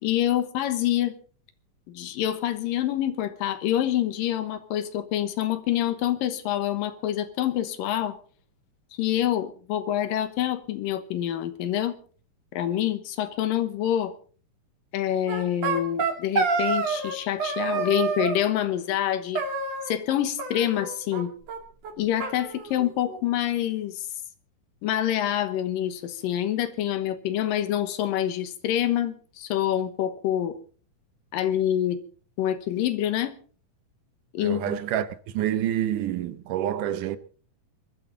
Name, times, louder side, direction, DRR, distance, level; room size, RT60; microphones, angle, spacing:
voice 1, 0.0-1.1 1.9-8.2 8.9-12.0 12.5-14.1 14.9-19.4 19.8-21.3 22.0-24.1 24.8-30.6 31.3-32.0 32.4-33.4 34.3-34.8, left 11 dB, 80° left, 2.8 m, -26 dB
sound 1, 15.3-17.1 17.4-18.4 19.3-20.1 20.4-21.2 21.5-21.6 21.8-21.9 22.2-23.2, right 4 dB, 50° right, 3.2 m, -28 dB
voice 2, 34.4-35.1 35.3-37.2, right 11 dB, 75° right, 2.3 m, -27 dB
23.5 x 12.5 x 3.9 m
omnidirectional pair, 3.9 m